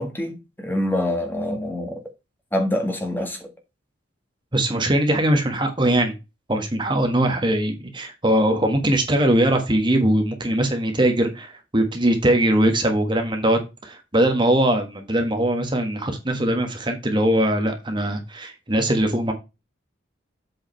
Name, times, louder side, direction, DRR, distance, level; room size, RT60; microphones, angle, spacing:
voice 1, 0.0-2.0 2.5-3.5, left 1 dB, 10° left, 1.6 m, -25 dB
voice 2, 4.5-6.1 6.5-19.3, right 1 dB, 25° right, 1.4 m, -21 dB
8.0 x 5.0 x 4.3 m
head